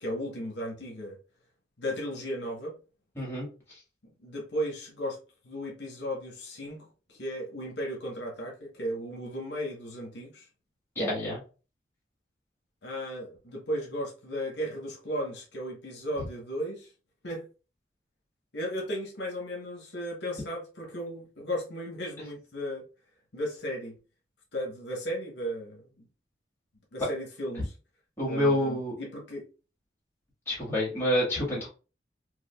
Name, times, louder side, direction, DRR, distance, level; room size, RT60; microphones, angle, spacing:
voice 1, 0.0-1.2 1.8-2.8 4.2-5.2 5.4-10.4 12.8-16.9 17.2-17.4 18.5-22.8 23.3-24.0 24.5-25.8 26.9-27.7 28.3-29.4, equal, 75° left, 1.0 m, -35 dB
voice 2, 3.1-3.5 10.9-11.4 16.2-16.3 28.2-28.9 30.5-31.7, left 1 dB, 15° left, 1.5 m, -28 dB
4.8 x 2.1 x 2.2 m
head